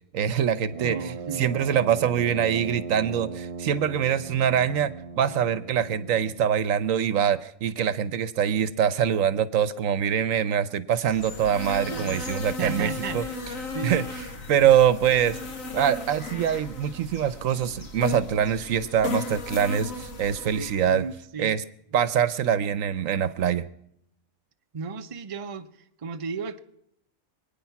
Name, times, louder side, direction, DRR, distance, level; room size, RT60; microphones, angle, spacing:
voice 1, 0.1-13.2 13.8-14.0 14.5-15.4 15.7-21.0 21.4-21.6 21.9-23.6, right 9 dB, 75° right, 15 dB, 1.2 m, -24 dB
Brass instrument, 0.7-6.6, right 5 dB, 55° right, 1.5 m, -37 dB
voice 2, 0.8-1.5 11.9-12.2 12.6-13.4 13.7-13.9 14.5-14.7 20.5-21.6 24.7-26.6, right 5 dB, 30° right, 8 dB, 0.7 m, -35 dB
sound 1, 11.1-21.0, left 3 dB, 80° left, 2.0 m, -36 dB
25.5 x 9.4 x 5.8 m, 0.74 s
omnidirectional pair, 1.4 m